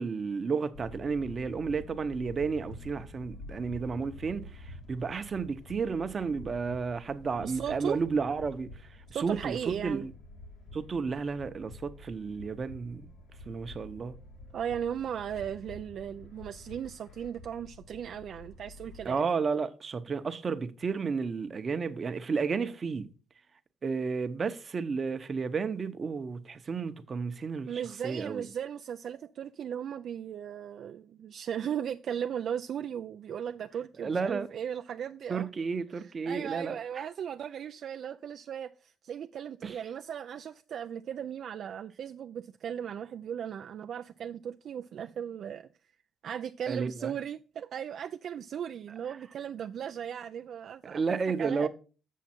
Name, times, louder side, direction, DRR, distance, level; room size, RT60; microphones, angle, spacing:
voice 1, 0.0-8.7 9.1-10.1 10.7-13.1 13.5-14.1 19.0-23.1 23.8-28.5 34.0-34.5 35.3-37.1 39.6-39.8 46.7-47.2 50.8-51.7, right 5 dB, 40° right, 0.8 m, -32 dB
sound 1, 0.7-19.2, left 2 dB, 70° left, 1.7 m, -48 dB
voice 2, 7.4-8.0 9.1-10.1 14.5-19.3 27.7-35.5 35.9-45.7 46.2-51.7, right 9 dB, 65° right, 0.3 m, -37 dB
7.4 x 6.4 x 4.3 m
cardioid pair, 90°, 0 cm